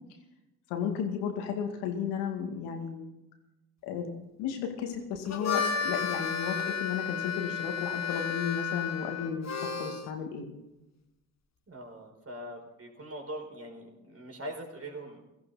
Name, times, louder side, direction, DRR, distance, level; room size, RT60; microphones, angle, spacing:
voice 1, 0.7-3.1 3.8-10.5, left 7 dB, 75° left, 4 dB, 2.2 m, -34 dB
Harmonica, 5.1-10.1, left 6 dB, 40° left, 1.5 m, -32 dB
voice 2, 11.7-15.2, right 1 dB, 35° right, 2 dB, 4.9 m, -42 dB
17.5 x 14.5 x 4.2 m, 0.97 s
hypercardioid pair, 45°, 40 cm